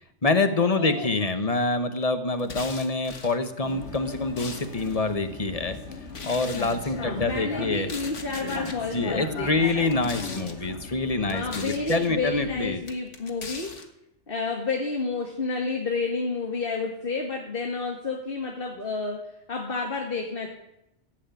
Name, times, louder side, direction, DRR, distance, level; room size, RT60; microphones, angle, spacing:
voice 1, 0.2-5.8 6.2-7.9 8.4-12.8, left 3 dB, 30° left, 8 dB, 1.3 m, -26 dB
voice 2, 0.8-1.1 7.0-9.9 11.2-13.7 14.3-19.2 19.5-20.5, left 3 dB, 50° left, 1 dB, 2.0 m, -30 dB
sound 1, 2.4-3.4 4.0-5.0 6.1-6.8 7.7-8.8 9.8-10.6 11.3-12.1 12.9-13.9, left 4 dB, 90° left, 1.9 m, -40 dB
Vehicle, 3.6-12.7, left 4 dB, 70° left, 2.3 m, -39 dB
15.5 x 8.3 x 9.1 m, 0.86 s
omnidirectional pair, 1.2 m